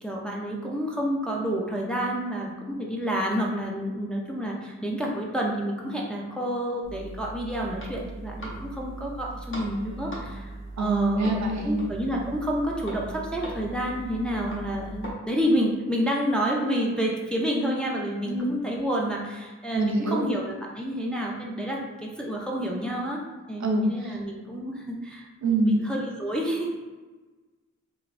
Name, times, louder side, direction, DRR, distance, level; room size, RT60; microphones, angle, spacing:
voice 1, 0.0-11.4 11.6-23.2 23.5-26.7, equal, 5° left, -2 dB, 0.5 m, -29 dB
sound 1, 6.8-15.1, right 1 dB, 40° left, 0.8 m, -39 dB
voice 2, 10.8-11.8 18.3-18.5 19.7-20.2 23.6-24.2 25.4-25.7, right 2 dB, 65° right, 0 dB, 0.6 m, -25 dB
3.0 x 2.5 x 2.5 m, 1.3 s
wide cardioid pair, 70°, 30 cm